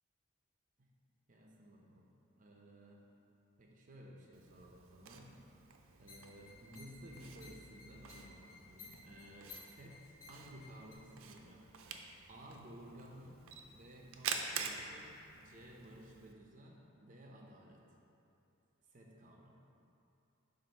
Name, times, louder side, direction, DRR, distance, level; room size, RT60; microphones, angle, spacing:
voice 1, 1.3-2.1 2.4-3.0 3.6-5.3 6.0-11.7 12.3-17.8 18.9-19.5, equal, 40° right, -1 dB, 0.6 m, -55 dB
Camera, 4.3-16.3, right 6 dB, 80° right, 0.5 m, -48 dB
sound 1, 6.0-10.9, left 4 dB, 85° left, 1.1 m, -57 dB
7.5 x 2.5 x 5.4 m, 2.8 s
head